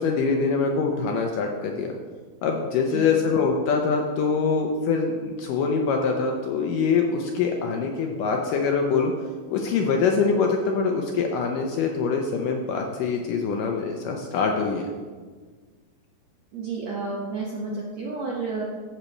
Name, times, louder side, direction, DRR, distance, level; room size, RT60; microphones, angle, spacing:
voice 1, 0.0-1.9 2.4-9.1 9.5-14.9, left 5 dB, 75° left, 2 dB, 2.0 m, -24 dB
voice 2, 16.5-18.7, right 3 dB, 70° right, -4 dB, 1.6 m, -31 dB
9.8 x 4.4 x 7.1 m, 1.5 s
omnidirectional pair, 4.4 m